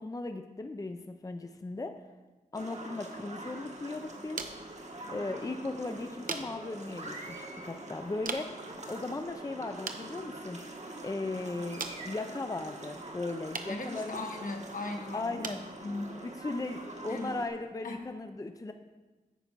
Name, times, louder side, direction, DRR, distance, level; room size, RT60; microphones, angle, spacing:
voice 1, 0.0-2.0 2.5-4.4 5.1-10.6 11.0-14.3 15.1-15.6 16.2-18.7, left 2 dB, 25° left, 7 dB, 0.5 m, -37 dB
sound 1, 2.5-17.5, right 2 dB, 55° right, 1.3 m, -44 dB
sound 2, 3.1-18.2, right 4 dB, 70° right, 0.8 m, -46 dB
voice 2, 13.7-15.4 15.8-16.2 17.1-17.3 17.8-18.0, left 2 dB, 65° left, 3 dB, 1.3 m, -38 dB
9.1 x 5.4 x 4.6 m, 1.2 s
cardioid pair, 45°, 15 cm